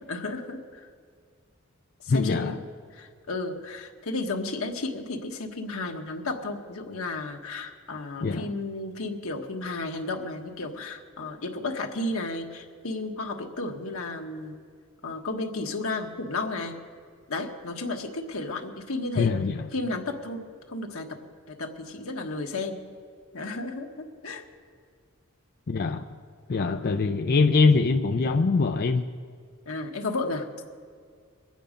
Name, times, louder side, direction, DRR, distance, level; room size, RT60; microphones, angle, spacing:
voice 1, 0.1-0.9 2.0-2.6 2.9-14.6 15.0-16.8 17.3-19.4 19.7-20.4 20.7-21.2 21.5-22.8 23.3-24.4 29.7-30.5, left 2 dB, 85° left, 3 dB, 1.4 m, -33 dB
voice 2, 2.1-2.6 8.2-8.5 19.2-19.7 25.7-26.0 26.5-29.0, left 4 dB, 45° left, 5 dB, 0.5 m, -23 dB
23.0 x 9.1 x 5.1 m, 2.1 s
head